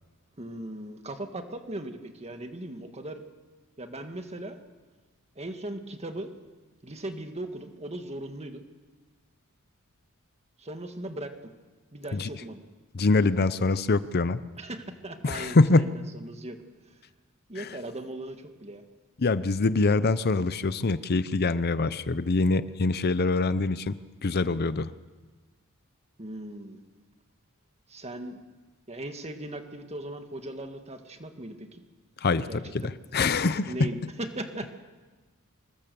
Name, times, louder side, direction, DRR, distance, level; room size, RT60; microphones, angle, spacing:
voice 1, 0.4-3.2 3.8-4.6 5.4-6.3 6.8-8.6 10.6-11.5 11.9-12.6 14.6-16.6 17.5-18.8 26.2-26.8 27.9-28.4 28.9-31.8 32.5-32.9 33.7-34.7, right 1 dB, 30° right, 6 dB, 1.8 m, -38 dB
voice 2, 12.9-14.4 15.2-15.8 17.6-17.7 19.2-23.9 24.2-24.9 32.2-33.9, left 3 dB, 45° left, 14 dB, 0.7 m, -24 dB
25.0 x 20.5 x 7.0 m, 1.3 s
head